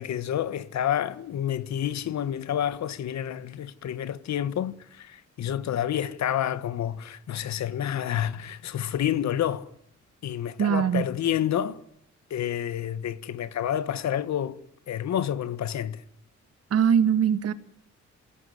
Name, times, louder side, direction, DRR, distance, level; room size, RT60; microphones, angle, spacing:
voice 1, 0.0-9.7 10.2-11.8 12.3-14.6 14.9-16.0, left 10 dB, 65° left, 1.6 m, -29 dB
voice 2, 10.6-11.1 16.7-17.5, right 8 dB, 55° right, 1.8 m, -21 dB
27.5 x 17.5 x 9.5 m
wide cardioid pair, 170°, 30 cm